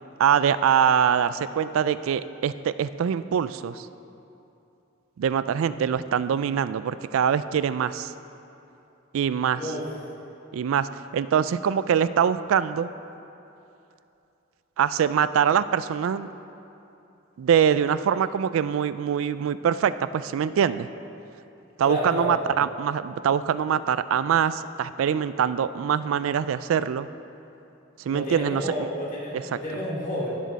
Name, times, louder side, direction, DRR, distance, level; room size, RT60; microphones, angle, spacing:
voice 1, 0.2-3.9 5.2-8.1 9.1-9.6 10.5-12.9 14.8-16.3 17.4-20.9 21.8-27.1 28.1-28.9 29.3-29.4, right 8 dB, 90° right, 14 dB, 0.3 m, -24 dB
voice 2, 5.6-5.9 9.5-9.9 21.9-22.4 28.1-30.3, equal, 40° left, -6 dB, 2.7 m, -31 dB
16.0 x 6.4 x 4.1 m, 2.8 s
head